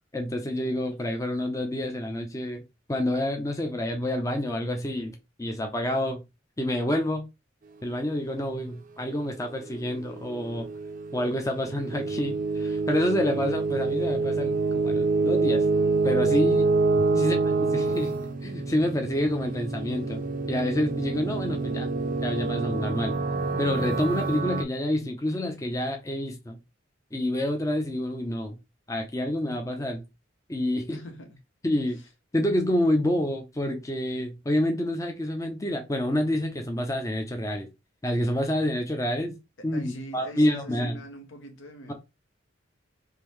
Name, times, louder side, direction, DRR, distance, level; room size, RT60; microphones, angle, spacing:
voice 1, 0.1-2.6 2.9-6.2 6.6-7.2 7.8-10.7 11.1-15.6 16.0-16.7 17.2-17.4 17.7-18.1 18.4-20.2 20.5-22.0 22.2-23.2 23.6-26.6 27.1-28.6 28.9-30.0 30.5-31.0 31.6-32.0 32.3-37.7 38.0-39.3 39.6-41.0, left 1 dB, 15° left, 0.5 m, -28 dB
sound 1, 9.8-24.6, right 3 dB, 45° right, 0.5 m, -27 dB
voice 2, 30.9-31.4 39.6-41.9, equal, 70° left, 0.9 m, -42 dB
3.6 x 2.6 x 3.1 m
head